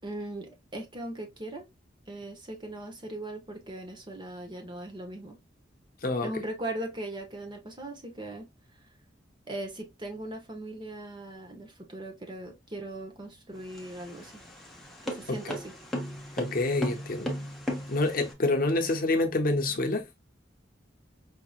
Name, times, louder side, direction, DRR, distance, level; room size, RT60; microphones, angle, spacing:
voice 1, 0.0-1.7 2.1-5.4 6.2-8.5 9.5-14.3 15.0-15.7, right 1 dB, 25° right, 0.9 m, -39 dB
sound 1, 13.6-18.3, equal, ahead, 0.9 m, -36 dB
voice 2, 16.4-17.3 17.9-20.1, left 2 dB, 50° left, 0.8 m, -27 dB
5.0 x 2.9 x 2.3 m
head